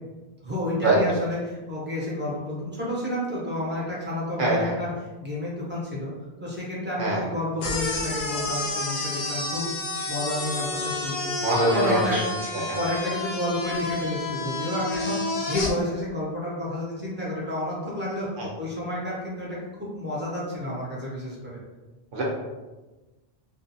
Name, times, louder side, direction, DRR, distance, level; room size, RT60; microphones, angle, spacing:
voice 1, 0.4-4.9 5.2-6.1 6.4-9.7 10.1-11.3 11.7-12.3 12.5-18.3 18.6-21.6, left 1 dB, 10° right, -7 dB, 0.6 m, -30 dB
voice 2, 4.4-4.7 7.0-7.2 11.4-12.2 12.6-12.8 18.4-18.5 22.1-22.2, right 2 dB, 60° right, -4 dB, 0.8 m, -23 dB
sound 1, 7.6-15.7, left 2 dB, 70° left, 0.8 m, -30 dB
2.5 x 2.3 x 2.6 m, 1.2 s
omnidirectional pair, 1.1 m